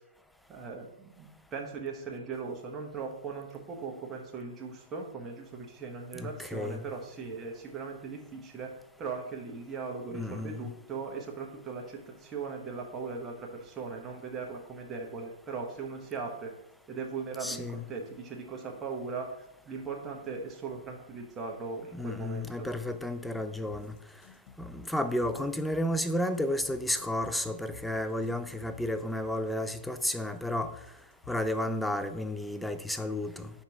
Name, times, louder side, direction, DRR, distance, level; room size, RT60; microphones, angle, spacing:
voice 1, 0.5-8.7 9.0-16.5 16.9-19.3 19.7-22.7, right 4 dB, 15° right, 1.0 m, -39 dB
voice 2, 6.1-6.9 10.1-10.7 17.4-17.8 21.9-23.9 24.6-30.8 31.3-33.5, left 1 dB, ahead, 0.4 m, -32 dB
sound 1, 23.7-31.7, left 6 dB, 45° left, 0.8 m, -53 dB
5.9 x 4.1 x 4.7 m
hypercardioid pair, 150°, 0 cm